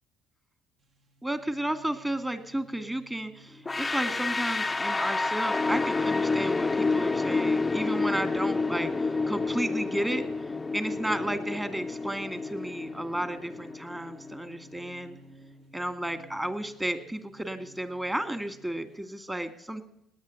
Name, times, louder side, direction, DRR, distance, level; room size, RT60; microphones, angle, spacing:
sound 1, 0.8-19.1, right 2 dB, 45° right, 1.7 m, -54 dB
voice 1, 1.2-10.2 10.7-15.2 15.7-19.8, right 1 dB, 10° right, 10 dB, 2.3 m, -33 dB
sound 2, 3.7-14.5, left 3 dB, 20° left, 0.6 m, -29 dB
19.0 x 9.4 x 7.9 m, 0.77 s
hypercardioid pair, 60°, 0 cm